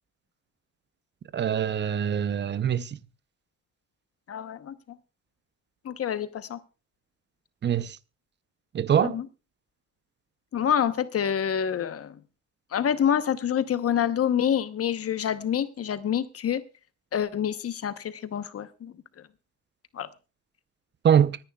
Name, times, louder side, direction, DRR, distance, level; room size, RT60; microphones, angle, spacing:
voice 1, 1.3-3.0 7.6-8.0 8.7-9.2 21.0-21.4, right 8 dB, 35° right, 0.6 m, -23 dB
voice 2, 4.3-5.0 5.8-6.6 9.0-9.3 10.5-12.2 12.7-16.6 17.1-18.9 19.9-20.1, left 9 dB, 50° left, 0.9 m, -27 dB
24.5 x 10.0 x 2.3 m
cardioid pair, 90°, 30 cm